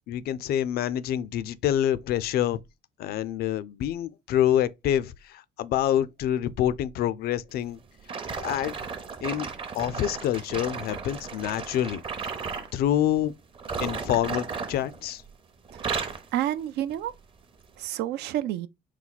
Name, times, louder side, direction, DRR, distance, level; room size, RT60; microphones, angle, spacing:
voice 1, 0.1-2.6 3.0-7.8 8.4-8.8 9.2-9.5 9.7-12.0 12.7-13.3 13.8-15.2, left 11 dB, 65° left, 0.4 m, -26 dB
sound 1, 8.1-12.7 13.5-15.3 15.6-16.3 16.9-17.1 17.7-17.8, right 5 dB, 30° right, 0.7 m, -34 dB
voice 2, 16.3-17.1 17.8-18.7, right 12 dB, 80° right, 0.4 m, -29 dB
4.3 x 2.3 x 4.0 m
cardioid pair, 110°, 17 cm